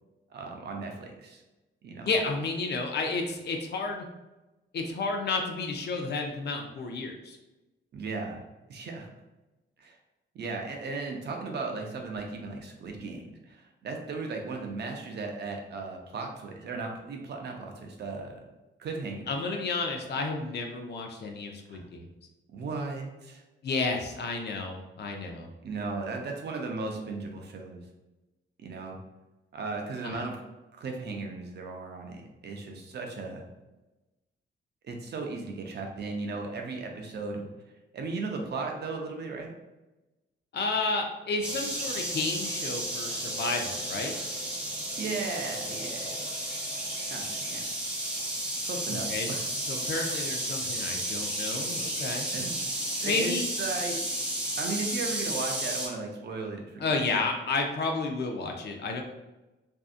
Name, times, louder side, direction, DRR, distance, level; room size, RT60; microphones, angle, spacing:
voice 1, 0.3-1.4 1.8-2.1 7.9-8.4 8.7-9.1 9.8-10.0 10.3-18.4 18.8-19.2 20.1-20.2 21.7-21.9 22.5-23.4 25.6-27.8 28.6-29.0 29.5-30.4 30.7-33.4 34.8-37.5 37.9-39.5 44.9-46.3 47.1-47.6 48.7-49.4 50.6-50.7 52.3-52.6 53.0-54.0 54.6-56.8 57.1-57.2, right 3 dB, 55° right, 2 dB, 0.5 m, -36 dB
voice 2, 2.0-4.1 4.7-7.4 19.3-22.1 23.6-25.5 30.0-30.2 40.5-44.2 48.9-49.4 49.7-52.3 53.0-53.5 56.8-59.0, left 3 dB, 55° left, 3 dB, 0.4 m, -31 dB
sound 1, 41.4-55.9, right 1 dB, 5° right, 0.5 m, -33 dB
2.6 x 2.4 x 2.4 m, 1.1 s
wide cardioid pair, 160°, 20 cm